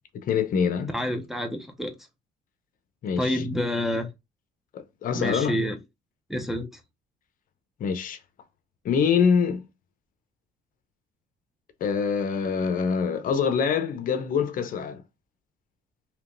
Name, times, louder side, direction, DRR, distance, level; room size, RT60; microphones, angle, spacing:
voice 1, 0.1-0.9 3.0-3.4 4.7-5.6 7.8-8.2 8.8-9.6 11.8-15.0, left 6 dB, 55° left, 0.7 m, -25 dB
voice 2, 0.9-2.0 3.2-4.1 5.1-5.8 6.3-6.8, left 1 dB, ahead, 0.6 m, -28 dB
3.4 x 2.9 x 2.5 m
cardioid pair, 110°, 17 cm